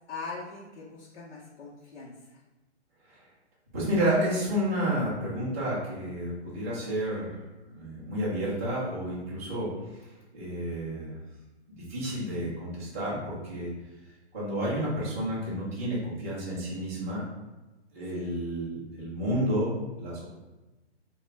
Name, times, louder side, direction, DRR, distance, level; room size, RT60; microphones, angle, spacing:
voice 1, 0.1-2.4 18.1-18.3, left 4 dB, 60° left, -7 dB, 0.8 m, -41 dB
voice 2, 3.7-7.3 7.7-9.7 10.3-11.1 11.7-13.7 14.3-17.2 17.9-19.7 20.0-20.3, equal, 15° right, -8 dB, 0.3 m, -30 dB
3.6 x 2.2 x 3.2 m, 1.1 s
hypercardioid pair, 150°, 35 cm